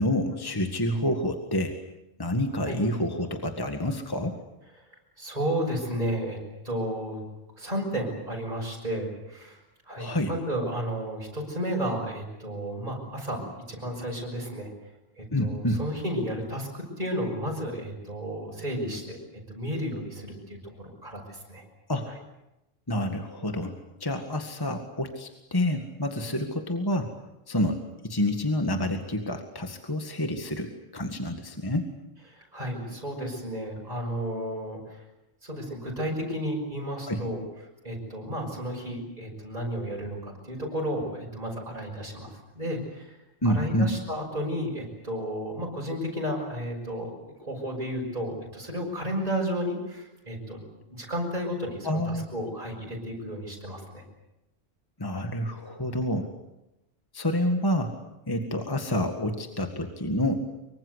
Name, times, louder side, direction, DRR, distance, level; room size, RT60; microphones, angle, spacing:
voice 1, 0.0-1.8 2.2-4.4 9.9-10.3 15.3-15.8 21.9-22.1 22.9-23.7 24.0-27.1 27.5-31.9 37.1-37.2 43.4-43.9 51.8-52.2 55.0-56.3 57.1-57.9 58.3-60.3, left 1 dB, 15° left, 5 dB, 1.9 m, -28 dB
voice 2, 5.2-6.4 6.6-7.2 7.6-9.6 9.9-13.4 13.7-14.7 15.2-19.2 19.5-21.6 22.1-22.2 32.3-35.0 35.4-37.4 37.8-43.2 43.4-47.1 47.4-50.6 50.9-54.0, equal, 30° right, -2 dB, 6.4 m, -32 dB
25.0 x 24.0 x 8.2 m, 0.92 s
omnidirectional pair, 1.3 m